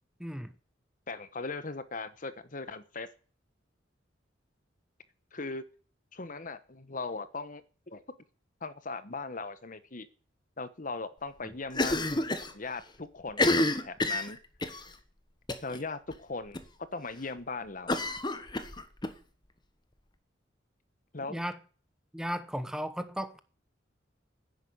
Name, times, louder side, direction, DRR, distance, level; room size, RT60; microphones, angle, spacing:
voice 1, 0.2-0.5 11.4-11.5 21.3-21.6 22.1-23.4, equal, 5° right, 0.9 m, -35 dB
voice 2, 1.1-3.1 5.3-5.7 6.1-7.6 7.9-8.0 8.6-10.1 10.6-12.1 12.5-14.4 15.6-16.6 16.9-18.0 21.1-21.4, left 3 dB, 45° left, 1.2 m, -39 dB
Cough, 11.7-12.5 12.8-12.9 13.3-14.8 15.5-15.8 16.1-16.2 16.5-16.6 17.9-19.1, left 2 dB, 25° left, 1.3 m, -29 dB
10.5 x 10.5 x 9.6 m
head